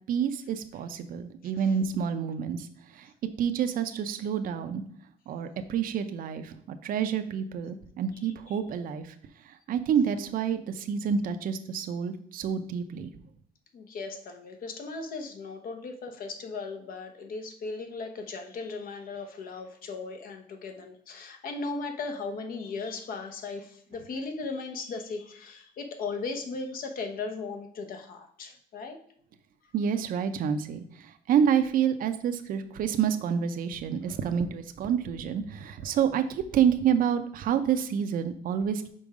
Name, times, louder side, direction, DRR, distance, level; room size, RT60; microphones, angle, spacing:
voice 1, 0.1-3.1 3.4-4.8 5.3-9.1 9.4-13.1 29.7-38.9, right 8 dB, 55° right, 9 dB, 0.6 m, -28 dB
voice 2, 13.7-29.0, left 4 dB, 60° left, 5 dB, 1.1 m, -37 dB
5.4 x 4.5 x 4.9 m, 0.63 s
cardioid pair, 110°, 17 cm